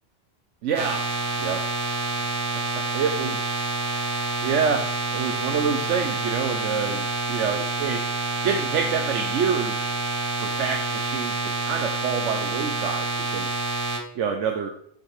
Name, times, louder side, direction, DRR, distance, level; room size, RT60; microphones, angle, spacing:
voice 1, 0.6-1.1 1.4-1.7 2.9-4.0 4.4-4.8 5.1-8.1 8.4-9.9 10.4-13.6 14.2-14.7, right 6 dB, 80° right, 4 dB, 1.0 m, -27 dB
sound 1, 0.7-14.0, right 3 dB, 50° right, 1.6 m, -28 dB
7.5 x 6.3 x 3.3 m, 0.67 s
omnidirectional pair, 1.2 m